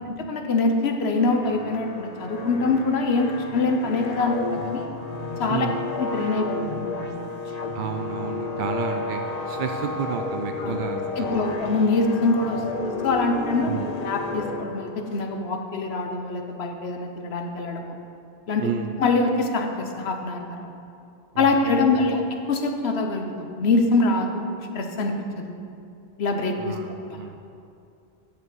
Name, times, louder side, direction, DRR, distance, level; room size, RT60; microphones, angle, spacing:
voice 1, 0.1-4.9 5.4-5.7 6.0-7.4 10.6-10.8 11.2-12.6 13.0-13.7 14.0-18.0 18.5-18.7 19.0-20.7 21.4-25.6 26.2-26.7 27.1-27.2, left 3 dB, 85° left, 4 dB, 1.2 m, -24 dB
sound 1, 1.1-15.2, left 3 dB, 45° left, 0.7 m, -32 dB
voice 2, 7.7-11.4 13.6-13.9 18.6-18.9 21.3-22.1 26.6-27.4, right 7 dB, 60° right, 4 dB, 0.6 m, -31 dB
9.6 x 5.2 x 7.6 m, 2.5 s
omnidirectional pair, 1.0 m